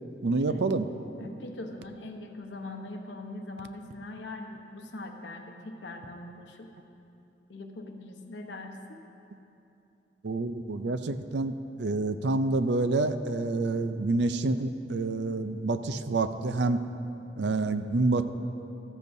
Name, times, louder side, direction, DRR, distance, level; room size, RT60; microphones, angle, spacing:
voice 1, 0.2-0.9 10.2-16.8 17.4-18.3, right 3 dB, 70° right, 10 dB, 0.5 m, -28 dB
voice 2, 1.2-6.7 7.5-9.0, left 2 dB, 80° left, 4 dB, 1.0 m, -41 dB
13.5 x 13.5 x 2.7 m, 2.8 s
head